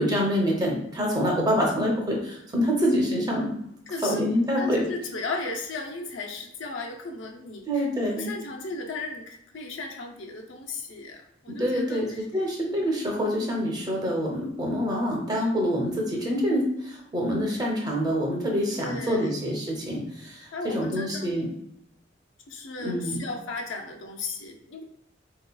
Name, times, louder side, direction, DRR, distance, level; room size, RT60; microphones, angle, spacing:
voice 1, 0.0-3.5 4.0-4.8 7.7-8.3 11.5-21.5 22.8-23.2, equal, 20° right, -1 dB, 0.7 m, -26 dB
voice 2, 3.9-4.2 4.6-12.2 12.7-12.9 18.7-19.3 20.5-21.5 22.5-24.8, left 3 dB, 70° left, 2 dB, 0.5 m, -36 dB
3.7 x 2.8 x 2.2 m, 0.75 s
head